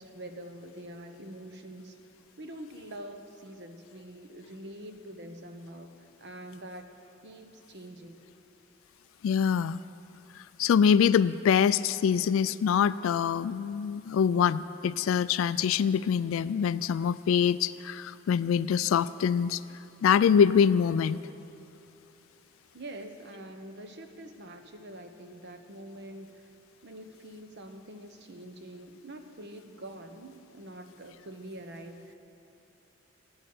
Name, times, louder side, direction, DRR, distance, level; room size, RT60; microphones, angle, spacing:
voice 1, 0.0-2.0 2.4-5.9 6.2-8.2 22.7-26.5 26.8-32.1, right 1 dB, 60° right, 7 dB, 1.0 m, -45 dB
voice 2, 9.2-9.8 10.4-19.6 20.0-21.2, left 7 dB, 75° left, 16 dB, 0.3 m, -24 dB
13.0 x 8.9 x 9.3 m, 2.9 s
head